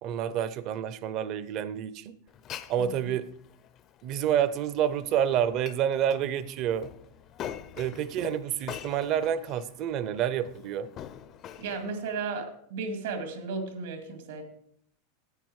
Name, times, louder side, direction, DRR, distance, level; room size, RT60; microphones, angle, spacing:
voice 1, 0.0-2.2 2.7-3.3 4.0-6.9 7.8-10.9, right 9 dB, 35° right, 15 dB, 0.5 m, -28 dB
Glass, 2.3-12.2, left 10 dB, 25° left, 0.4 m, -45 dB
voice 2, 11.6-14.4, right 4 dB, 75° right, 5 dB, 2.1 m, -34 dB
9.8 x 8.7 x 4.7 m, 0.67 s
supercardioid pair, 175°, 0 cm